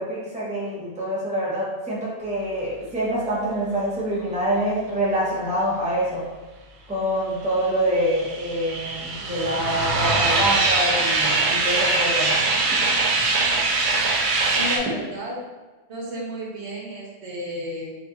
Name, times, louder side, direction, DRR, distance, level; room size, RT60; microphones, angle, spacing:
voice 1, 0.0-6.2 6.9-12.3, equal, 10° right, -6 dB, 0.7 m, -25 dB
sound 1, 7.6-14.8, right 3 dB, 55° right, 0.6 m, -22 dB
voice 2, 14.5-15.4 15.9-18.0, equal, 80° right, -4 dB, 1.2 m, -32 dB
4.0 x 2.8 x 2.4 m, 1.2 s
omnidirectional pair, 1.1 m